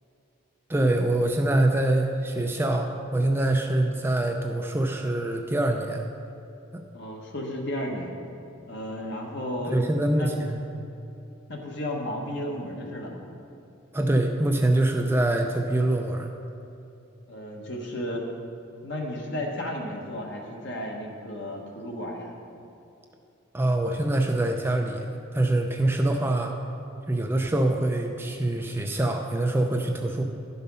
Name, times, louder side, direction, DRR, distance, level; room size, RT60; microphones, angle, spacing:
voice 1, 0.7-6.1 6.7-6.8 9.7-10.6 13.9-16.3 23.5-26.5 27.1-30.2, right 1 dB, 10° right, 3 dB, 0.4 m, -24 dB
voice 2, 6.9-8.1 8.7-9.8 10.1-10.3 11.5-13.2 17.3-18.2 18.8-22.3, left 1 dB, 55° left, 0 dB, 1.4 m, -33 dB
12.0 x 5.5 x 5.4 m, 2.7 s
head